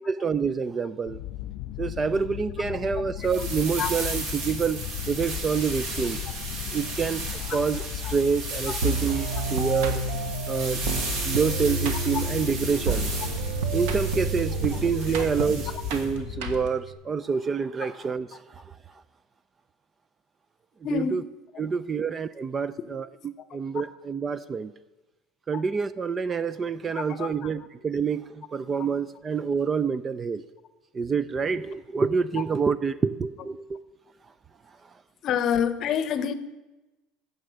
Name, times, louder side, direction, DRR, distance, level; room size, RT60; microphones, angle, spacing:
voice 1, 0.1-1.2 1.8-4.8 5.1-6.2 6.7-10.0 10.5-10.8 11.2-13.1 13.7-18.6 20.9-21.2 21.6-24.7 25.5-30.4 30.9-33.8, right 6 dB, 20° right, 0.3 m, -27 dB
sound 1, 1.1-16.7, left 14 dB, 60° left, 0.3 m, -36 dB
sound 2, 3.2-16.1, right 3 dB, 55° right, 2.5 m, -35 dB
sound 3, 8.8-16.9, right 3 dB, 75° right, 1.3 m, -30 dB
voice 2, 15.1-15.5 17.8-17.9 20.8-21.2 21.5-22.0 25.5-25.6 26.9-27.5 35.2-36.3, left 8 dB, 40° left, 0.7 m, -29 dB
9.6 x 6.9 x 7.7 m
cardioid pair, 140°, 0 cm